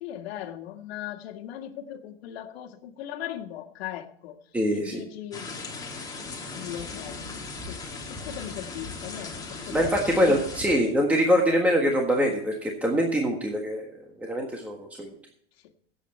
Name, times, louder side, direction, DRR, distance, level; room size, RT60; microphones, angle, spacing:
voice 1, 0.0-4.4 4.7-5.9 6.5-7.2 7.7-7.8 8.1-9.9 10.3-10.4, left 11 dB, 75° left, 5 dB, 1.8 m, -38 dB
voice 2, 4.5-5.0 9.6-13.9 14.2-15.1, equal, 5° right, 0 dB, 1.5 m, -24 dB
sound 1, 5.3-10.7, left 3 dB, 10° left, 2.6 m, -38 dB
17.0 x 8.1 x 4.3 m, 0.67 s
supercardioid pair, 145°, 31 cm